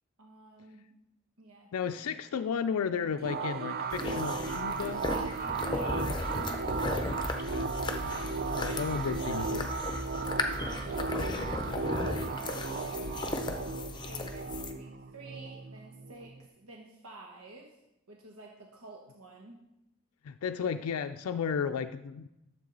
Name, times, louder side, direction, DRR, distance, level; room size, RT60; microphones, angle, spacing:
voice 1, 0.2-0.9 1.4-1.9 5.1-7.2 8.7-8.8 9.5-9.7 10.6-13.3 14.1-17.7 18.1-19.6, right 2 dB, 80° right, 0 dB, 1.1 m, -50 dB
voice 2, 1.7-5.1 7.3-7.7 8.0-9.7 10.1-10.3 20.2-22.3, left 6 dB, 85° left, 9 dB, 0.4 m, -34 dB
sound 1, 3.2-16.4, right 4 dB, 45° right, 0.5 m, -35 dB
sound 2, 3.9-14.7, left 2 dB, 20° left, 0.7 m, -36 dB
sound 3, 6.1-11.7, equal, ahead, 1.8 m, -43 dB
12.5 x 7.4 x 3.9 m, 0.92 s
head